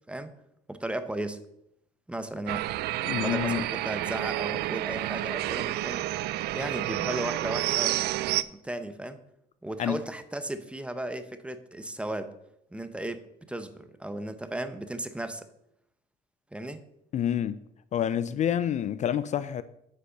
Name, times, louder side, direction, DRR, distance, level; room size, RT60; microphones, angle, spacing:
voice 1, 0.7-1.4 2.1-2.7 3.2-6.2 6.5-9.2 9.6-12.3 12.7-15.5 16.5-16.8, right 1 dB, 5° right, 0.8 m, -35 dB
sound 1, 2.5-8.4, right 15 dB, 75° right, 0.4 m, -30 dB
voice 2, 3.0-3.6 9.8-10.0 17.1-17.6 17.9-19.6, left 9 dB, 45° left, 0.4 m, -28 dB
8.3 x 5.3 x 6.7 m
cardioid pair, 110°, 17 cm